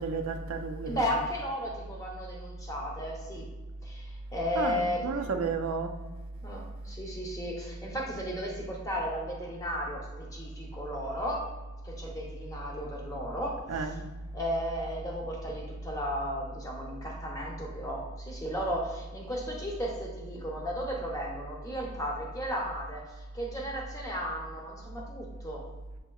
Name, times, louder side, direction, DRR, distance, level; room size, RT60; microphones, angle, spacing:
voice 1, 0.0-1.1 4.5-6.0 13.7-14.0, right 4 dB, 80° right, 0.4 m, -32 dB
voice 2, 0.9-3.5 3.8-5.2 6.4-11.4 11.8-13.6 14.3-25.6, equal, 15° left, 0.7 m, -35 dB
6.5 x 2.8 x 2.3 m
head